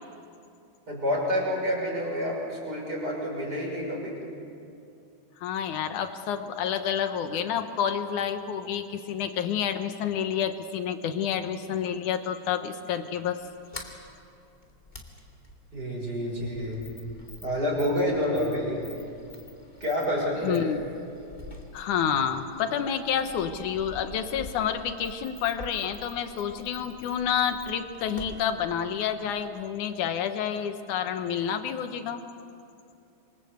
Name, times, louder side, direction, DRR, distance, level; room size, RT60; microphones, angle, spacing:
voice 1, 0.9-4.2 15.7-16.8 17.4-18.8 19.8-20.7, equal, 20° right, -2 dB, 6.3 m, -28 dB
voice 2, 5.4-13.4 20.4-20.8 21.7-32.2, left 8 dB, 70° left, 9 dB, 2.0 m, -29 dB
Sliding door, 13.4-29.8, left 2 dB, 15° left, 1.6 m, -47 dB
27.0 x 24.0 x 8.1 m, 2.5 s
omnidirectional pair, 4.8 m